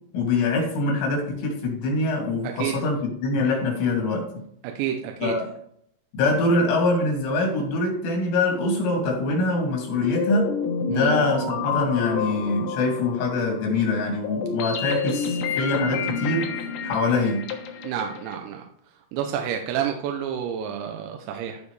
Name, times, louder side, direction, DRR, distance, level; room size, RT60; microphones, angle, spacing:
voice 1, 0.1-4.4 5.2-5.5 6.1-10.6 10.9-16.5 16.8-17.5, left 2 dB, 85° left, -1 dB, 4.7 m, -24 dB
voice 2, 4.6-5.3 10.9-11.2 17.8-18.6 19.1-21.6, right 9 dB, 85° right, 3 dB, 3.1 m, -29 dB
sound 1, 10.0-18.4, left 5 dB, 70° left, 2.2 m, -29 dB
14.5 x 5.3 x 3.2 m, 0.69 s
omnidirectional pair, 5.1 m